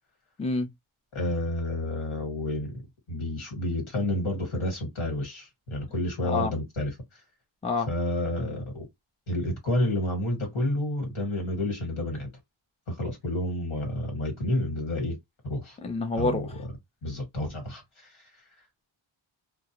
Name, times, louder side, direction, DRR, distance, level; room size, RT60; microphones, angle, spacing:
voice 1, 0.4-0.7 6.2-6.5 7.6-7.9 15.8-16.5, left 3 dB, 15° left, 0.5 m, -27 dB
voice 2, 1.1-2.7 3.1-7.2 7.9-8.8 9.3-12.3 12.9-15.2 15.4-15.8 16.2-16.5 17.0-18.3, left 1 dB, 85° left, 1.6 m, -30 dB
2.4 x 2.1 x 2.8 m
wide cardioid pair, 80°, 48 cm